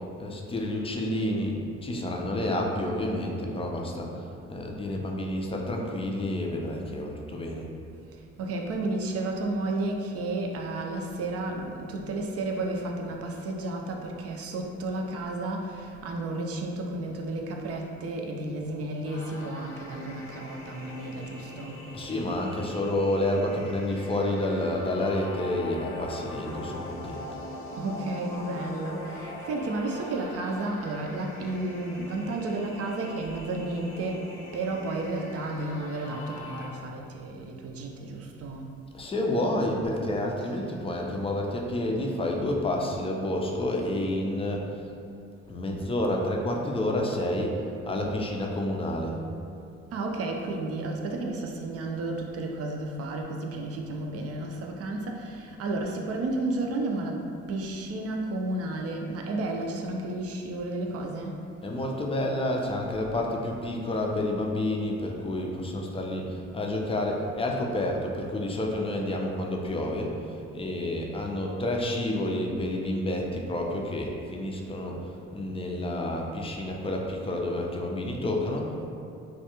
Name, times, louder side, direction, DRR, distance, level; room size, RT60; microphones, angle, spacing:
voice 1, 0.2-7.7 21.9-27.2 38.9-44.7 45.5-47.6 47.9-49.2 61.6-78.9, left 1 dB, 20° left, 0 dB, 0.4 m, -29 dB
voice 2, 8.1-21.8 27.7-38.7 40.4-40.5 49.9-61.4 63.9-64.0, right 2 dB, 50° right, 1 dB, 0.4 m, -32 dB
sound 1, 19.0-36.7, left 2 dB, 80° left, 0.6 m, -42 dB
2.4 x 2.2 x 2.9 m, 2.5 s
hypercardioid pair, 55°, 32 cm